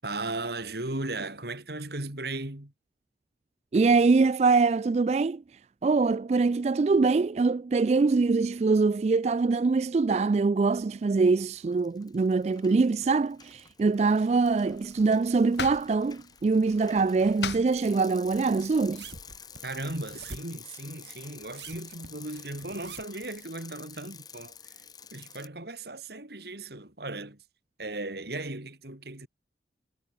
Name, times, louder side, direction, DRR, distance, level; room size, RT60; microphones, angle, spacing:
voice 1, 0.0-2.7 19.6-24.6 25.1-27.4 27.8-29.3, right 2 dB, 65° right, 3.1 m, -36 dB
voice 2, 3.7-5.4 5.8-19.0, right 4 dB, 35° right, 0.3 m, -24 dB
Bicycle, 11.1-11.4 11.7-25.5, left 7 dB, 20° left, 4.8 m, -50 dB
sound 1, 14.4-19.8, left 5 dB, 75° left, 2.4 m, -42 dB
sound 2, 19.0-20.6 21.4-23.3 24.0-24.1, right 4 dB, 80° right, 3.4 m, -45 dB
head